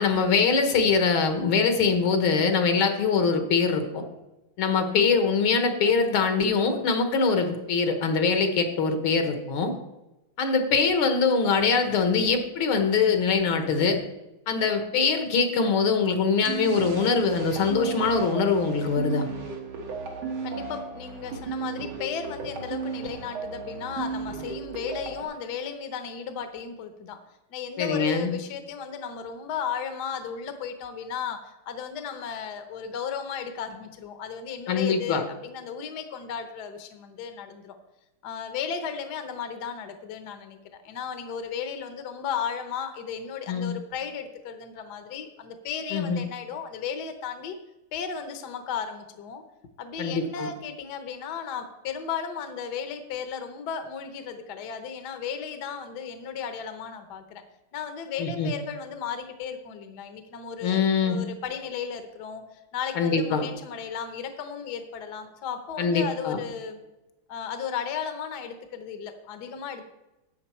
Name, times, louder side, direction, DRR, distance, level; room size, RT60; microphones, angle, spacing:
voice 1, 0.0-4.0 4.6-9.7 10.4-14.0 14.5-19.3 27.8-28.3 34.7-35.2 43.5-43.7 45.9-46.2 50.0-50.5 58.2-58.5 60.6-61.2 63.0-63.4 65.8-66.4, left 5 dB, 75° left, 6 dB, 2.0 m, -23 dB
sound 1, 16.4-25.2, right 5 dB, 75° right, 2.3 m, -35 dB
voice 2, 20.4-27.2 27.5-37.8 38.2-47.5 47.9-49.4 49.8-57.4 57.7-66.8 67.3-69.8, left 7 dB, 60° left, 8 dB, 1.3 m, -35 dB
12.0 x 7.7 x 4.3 m, 1.0 s
omnidirectional pair, 2.3 m